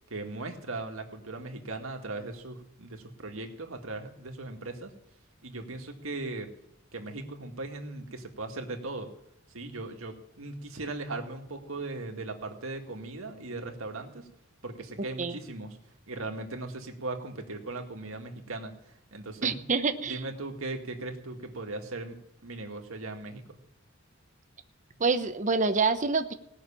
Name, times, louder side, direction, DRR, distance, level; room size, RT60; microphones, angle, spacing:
voice 1, 0.1-4.9 5.4-6.5 6.9-9.1 9.5-14.3 14.6-15.8 16.1-18.8 19.1-19.6 20.0-22.2 22.4-23.6, right 2 dB, 80° right, 4 dB, 2.0 m, -38 dB
voice 2, 19.4-20.2 25.0-26.3, right 4 dB, 35° right, 8 dB, 0.9 m, -26 dB
18.0 x 6.6 x 8.6 m, 0.82 s
head